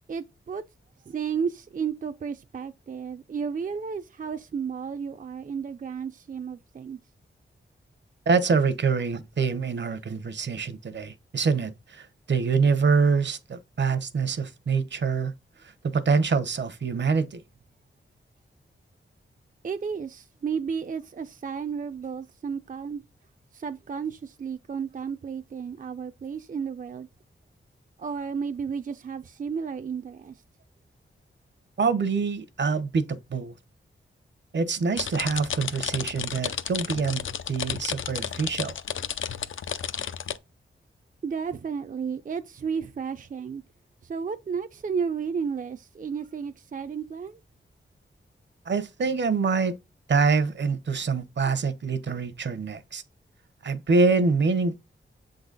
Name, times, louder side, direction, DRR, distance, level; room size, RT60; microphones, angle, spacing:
voice 1, 0.1-0.6 1.1-7.0 19.6-23.0 23.5-27.1 28.0-30.4 41.2-43.6 44.0-47.4, right 6 dB, 40° right, 0.5 m, -32 dB
voice 2, 8.3-15.3 15.6-17.4 31.8-33.5 34.5-38.8 48.7-49.8 50.1-53.0 53.6-54.8, right 4 dB, 65° right, 0.9 m, -25 dB
sound 1, 35.0-40.4, left 8 dB, 80° left, 0.6 m, -32 dB
7.9 x 3.9 x 3.9 m
wide cardioid pair, 115°, 20 cm